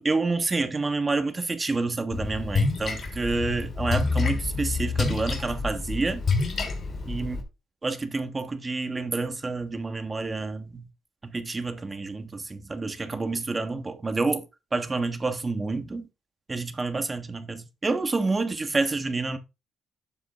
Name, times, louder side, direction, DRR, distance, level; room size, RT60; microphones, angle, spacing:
voice 1, 0.0-6.2 7.0-7.4 7.8-10.9 11.2-14.4 14.7-16.0 16.5-19.4, right 3 dB, 25° right, 1.4 m, -28 dB
Splash splatter, 2.1-7.4, left 4 dB, 45° left, 3.0 m, -28 dB
11.5 x 7.6 x 2.5 m
cardioid pair, 90°, 0 cm